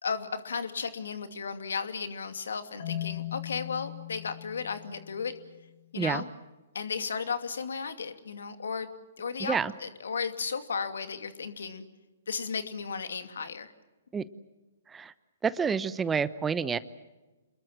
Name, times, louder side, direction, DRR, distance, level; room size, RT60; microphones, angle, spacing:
voice 1, 0.0-5.3 5.9-6.3 6.7-11.8 12.3-13.7, left 5 dB, 70° left, 9 dB, 2.6 m, -34 dB
Marimba xylophone, 2.8-5.8, left 13 dB, 50° left, 4.4 m, -39 dB
voice 2, 15.4-16.8, right 6 dB, 15° right, 16 dB, 0.9 m, -28 dB
28.0 x 21.5 x 7.6 m, 1.1 s
figure-of-eight pair, 125°, 0 cm